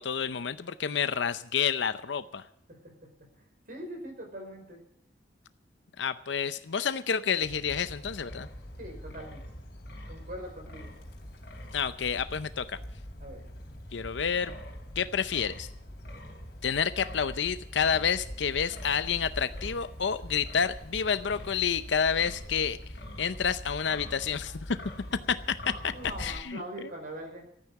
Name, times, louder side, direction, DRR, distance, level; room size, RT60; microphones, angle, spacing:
voice 1, 0.0-2.4 6.0-8.5 11.7-12.7 13.9-14.6 15.0-15.7 16.6-22.8 23.2-24.8 25.3-25.4 25.8-25.9 26.2-26.6, left 7 dB, 75° left, 13 dB, 0.6 m, -29 dB
voice 2, 3.4-4.8 8.8-9.4 10.1-10.9 13.2-13.4 25.9-27.4, right 1 dB, 50° right, 2 dB, 4.8 m, -42 dB
Wind, 7.4-26.4, equal, 60° left, 3.5 m, -43 dB
13.5 x 9.5 x 8.4 m, 0.71 s
head